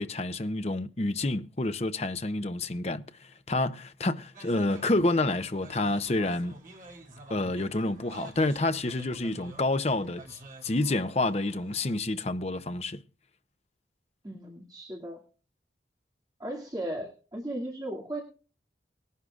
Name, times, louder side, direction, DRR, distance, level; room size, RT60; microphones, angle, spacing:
voice 1, 0.0-6.5 7.3-13.0, left 2 dB, 35° left, 0.7 m, -29 dB
sound 1, 4.3-11.9, right 3 dB, 45° right, 2.9 m, -50 dB
voice 2, 14.2-15.2 16.4-18.2, right 1 dB, 20° right, 2.4 m, -36 dB
20.0 x 11.0 x 2.4 m
head